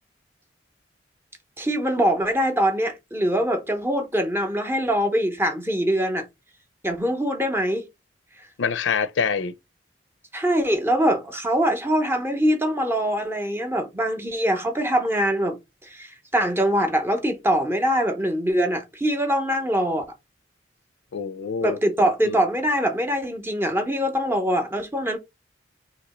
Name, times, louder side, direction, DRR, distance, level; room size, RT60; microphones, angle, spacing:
voice 1, 1.6-6.2 6.8-7.9 10.3-15.6 15.9-20.0 21.6-25.2, equal, 15° right, 0.7 m, -23 dB
voice 2, 8.6-9.5 21.1-21.8 22.2-22.4, left 6 dB, 80° left, 0.5 m, -25 dB
3.0 x 2.8 x 4.1 m
head